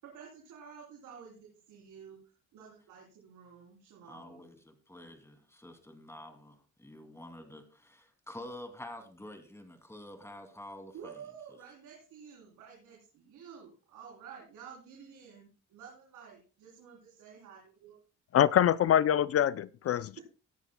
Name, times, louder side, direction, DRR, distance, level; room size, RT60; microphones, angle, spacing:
voice 1, 0.0-2.2 2.5-4.4 10.9-18.0 20.1-20.2, right 7 dB, 85° right, 3.5 m, -51 dB
voice 2, 4.1-11.1, left 1 dB, 10° left, 2.5 m, -48 dB
voice 3, 18.3-20.2, left 10 dB, 50° left, 0.5 m, -25 dB
18.0 x 10.5 x 2.2 m
cardioid pair, 90°, 30 cm